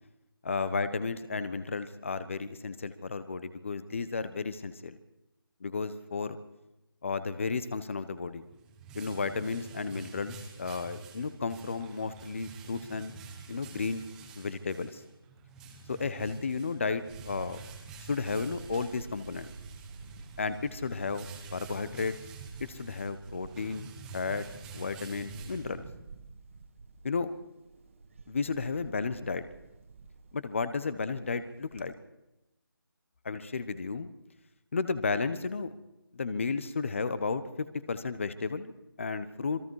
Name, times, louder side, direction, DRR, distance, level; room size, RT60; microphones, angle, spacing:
voice 1, 0.4-5.0 5.6-6.4 7.0-8.4 8.9-13.1 13.5-14.0 14.4-15.0 15.9-17.6 18.0-19.5 20.4-22.1 22.6-23.9 24.1-24.5 24.7-25.9 27.0-27.3 28.3-29.4 30.3-31.9 33.2-34.1 34.7-35.7 36.1-38.7 39.0-39.6, left 4 dB, 35° left, 13 dB, 1.2 m, -33 dB
sound 1, 8.3-26.1, right 4 dB, 5° right, 1.1 m, -48 dB
Camera, 17.1-31.9, right 4 dB, 35° right, 2.0 m, -51 dB
26.5 x 20.5 x 4.8 m, 0.92 s
figure-of-eight pair, 170°, 12 cm